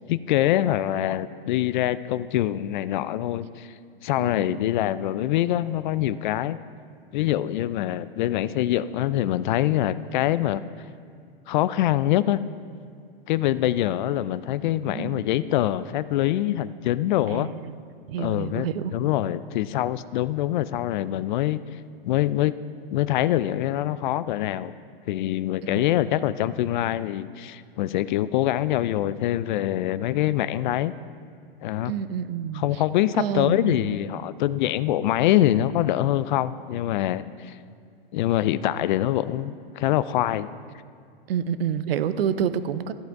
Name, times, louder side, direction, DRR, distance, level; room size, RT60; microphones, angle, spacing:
voice 1, 0.1-3.7 4.0-6.6 7.1-10.6 11.5-12.4 13.3-17.5 18.2-21.6 22.0-22.5 22.9-24.7 25.1-30.9 31.6-31.9 32.5-37.6 38.1-40.5, left 13 dB, 55° left, 16 dB, 0.4 m, -24 dB
voice 2, 4.2-4.7 15.0-15.2 17.3-17.8 18.1-18.9 25.6-25.8 31.8-32.8 33.2-33.8 41.3-42.9, right 8 dB, 75° right, 13 dB, 0.7 m, -28 dB
13.5 x 7.9 x 4.7 m, 2.3 s
hypercardioid pair, 130°, 30 cm